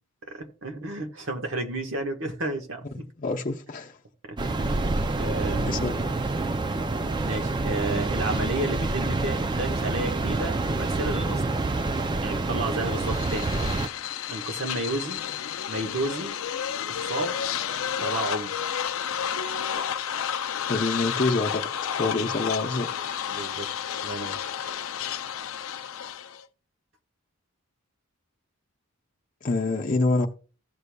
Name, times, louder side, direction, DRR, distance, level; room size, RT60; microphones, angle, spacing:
voice 1, 0.2-3.0 4.2-5.8 7.2-11.4 12.2-13.5 14.3-15.3 15.7-16.4 16.9-17.4 18.0-18.6 22.0-22.8 23.3-23.7 24.0-24.4, right 2 dB, 60° right, 1.4 m, -32 dB
voice 2, 3.2-3.9 5.7-6.0 20.7-21.6 22.0-22.9 29.4-30.3, left 3 dB, 35° left, 0.7 m, -26 dB
sound 1, 4.4-13.9, right 2 dB, 20° right, 0.3 m, -27 dB
sound 2, 12.9-26.4, left 8 dB, 70° left, 0.5 m, -31 dB
16.0 x 6.7 x 2.3 m
head